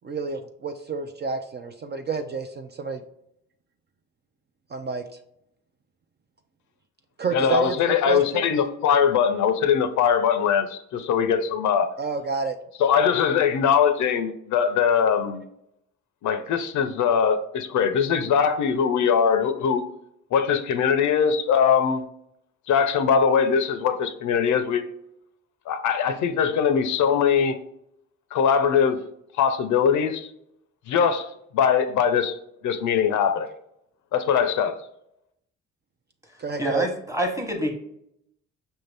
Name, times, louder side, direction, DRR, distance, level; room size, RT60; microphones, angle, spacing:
voice 1, 0.0-3.0 4.7-5.0 7.2-8.4 12.0-12.6 36.4-36.9, right 4 dB, 35° right, 0.4 m, -29 dB
voice 2, 7.3-11.9 12.8-15.4 16.2-19.8 20.3-22.0 22.7-24.9 25.7-27.6 28.3-29.0 29.4-30.3 30.9-32.3 32.6-33.5 34.1-34.8, left 7 dB, 75° left, 0.6 m, -21 dB
voice 3, 36.6-37.8, equal, 10° right, 1.0 m, -26 dB
5.7 x 2.7 x 3.3 m
cardioid pair, 90°, 30 cm